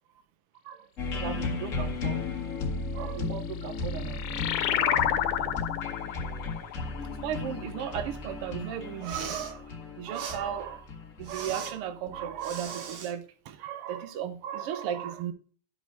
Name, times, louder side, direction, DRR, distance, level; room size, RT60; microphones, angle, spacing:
sound 1, 1.0-12.7, left 4 dB, 50° left, 0.9 m, -35 dB
voice 1, 1.1-2.2 2.9-5.7 7.1-10.9 11.2-15.3, right 9 dB, 75° right, 1.3 m, -36 dB
sound 2, 3.4-8.5, left 11 dB, 80° left, 2.1 m, -31 dB
Respiratory sounds, 8.9-9.5 10.1-10.4 11.2-11.7 12.4-13.1, right 5 dB, 55° right, 1.9 m, -40 dB
11.5 x 5.2 x 4.6 m
omnidirectional pair, 3.6 m